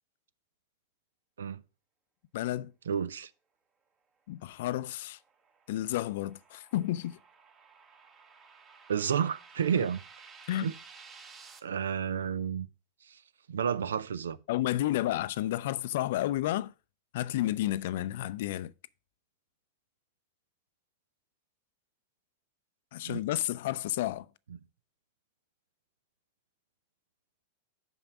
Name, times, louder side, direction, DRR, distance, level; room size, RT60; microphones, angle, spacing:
voice 1, 2.3-2.7 4.3-5.2 5.7-7.2 9.8-9.9 10.5-10.7 14.5-16.7 17.1-18.7 22.9-24.3, left 14 dB, 65° left, 0.4 m, -31 dB
voice 2, 2.9-3.3 8.9-10.0 10.6-10.7 11.6-12.7 13.1-13.2 13.5-14.4 23.0-23.2 24.5-24.6, right 8 dB, 80° right, 0.5 m, -31 dB
sound 1, 4.8-11.6, right 5 dB, 25° right, 1.2 m, -54 dB
6.0 x 5.4 x 5.9 m
hypercardioid pair, 100°, 0 cm